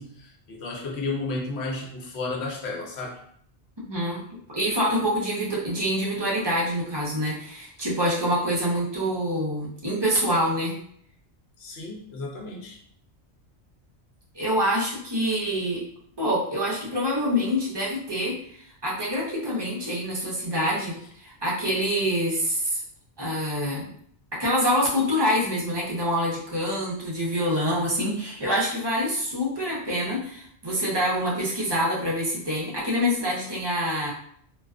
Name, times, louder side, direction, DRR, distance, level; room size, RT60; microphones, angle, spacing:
voice 1, 0.0-3.2 11.6-12.8, left 3 dB, 70° left, -1 dB, 0.9 m, -33 dB
voice 2, 3.8-10.7 14.3-15.8 16.2-18.3 18.8-22.8 23.2-23.9 24.3-34.1, equal, 30° right, -5 dB, 0.5 m, -26 dB
2.3 x 2.3 x 2.3 m, 0.65 s
omnidirectional pair, 1.2 m